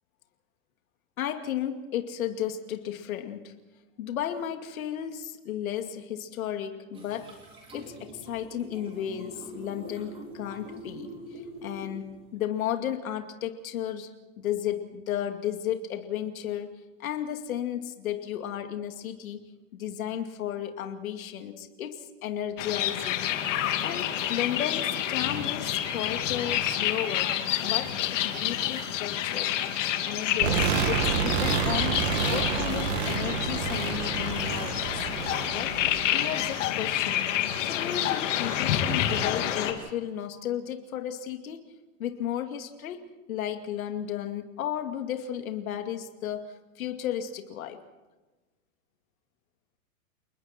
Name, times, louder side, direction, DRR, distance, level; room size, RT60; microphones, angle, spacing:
voice 1, 1.2-3.5 4.0-7.3 7.7-14.1 14.4-16.7 17.0-19.4 19.7-23.4 23.8-29.6 30.0-34.8 35.5-35.8 36.1-41.7 42.0-47.8, left 10 dB, 80° left, 6 dB, 2.5 m, -34 dB
Toilet Flushes, 6.9-12.3, right 1 dB, 15° right, 3.9 m, -44 dB
sound 1, 22.6-39.7, left 11 dB, 60° left, 2.6 m, -29 dB
sound 2, 30.4-36.5, right 7 dB, 50° right, 2.3 m, -29 dB
29.5 x 20.5 x 4.4 m, 1.2 s
supercardioid pair, 160°, 42 cm